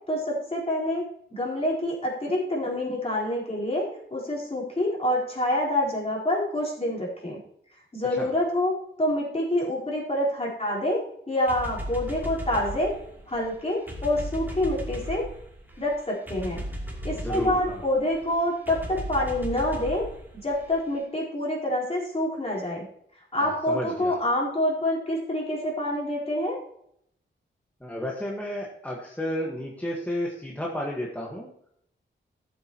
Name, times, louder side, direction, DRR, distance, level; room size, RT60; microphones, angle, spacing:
voice 1, 0.1-7.4 7.9-8.7 9.0-13.0 13.3-15.3 15.8-16.6 17.0-20.1 20.3-22.8 23.3-26.6, left 1 dB, 30° left, -4 dB, 4.2 m, -27 dB
sound 1, 11.5-21.0, equal, 10° right, 3.0 m, -37 dB
voice 2, 17.1-17.8 23.4-24.2 27.8-31.5, equal, 10° left, -3 dB, 1.6 m, -32 dB
13.5 x 7.9 x 3.0 m, 0.71 s
wide cardioid pair, 105°, 20 cm